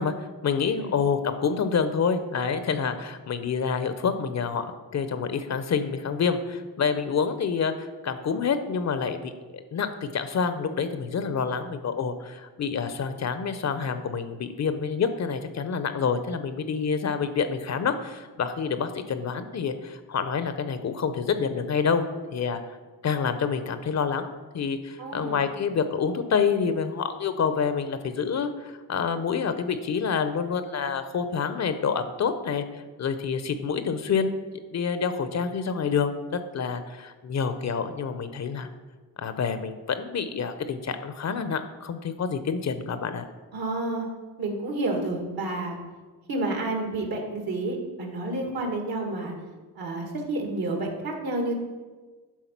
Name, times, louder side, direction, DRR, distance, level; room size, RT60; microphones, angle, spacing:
voice 1, 0.0-22.0 22.3-22.6 23.0-24.3 24.5-34.4 34.7-38.7 39.2-43.2, left 6 dB, 45° left, 10 dB, 0.7 m, -27 dB
voice 2, 25.0-25.4 43.5-44.1 44.4-45.8 46.3-49.3 49.8-51.5, right 2 dB, 65° right, 2 dB, 1.9 m, -30 dB
9.2 x 3.7 x 5.9 m, 1.3 s
cardioid pair, 80°, 39 cm